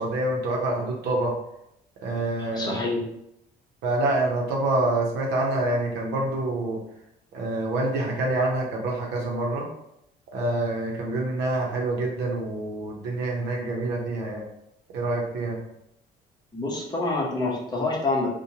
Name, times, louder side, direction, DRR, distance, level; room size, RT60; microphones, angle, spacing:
voice 1, 0.0-1.3 2.0-2.8 3.8-6.8 7.3-9.7 10.3-14.4 14.9-15.6, right 2 dB, 80° right, -1 dB, 0.7 m, -26 dB
voice 2, 2.5-3.0 16.5-18.3, left 2 dB, 25° left, -3 dB, 0.7 m, -26 dB
2.8 x 2.2 x 2.7 m, 0.78 s
cardioid pair, 110°, 17 cm